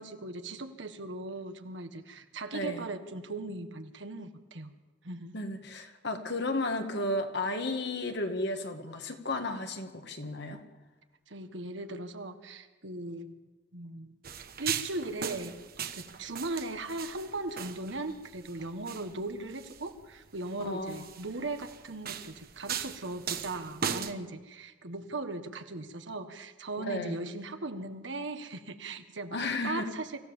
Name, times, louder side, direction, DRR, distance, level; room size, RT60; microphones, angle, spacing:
voice 1, 0.0-4.7 5.0-5.4 11.3-13.4 13.7-14.2 14.6-15.6 15.9-30.2, right 2 dB, 70° right, 8 dB, 1.5 m, -38 dB
voice 2, 2.5-2.9 5.3-10.6 20.6-21.1 26.8-27.2 29.3-29.8, left 2 dB, 65° left, 5 dB, 2.1 m, -33 dB
sound 1, 14.2-24.1, right 7 dB, 55° right, 1.2 m, -39 dB
25.0 x 15.5 x 7.3 m, 1.2 s
head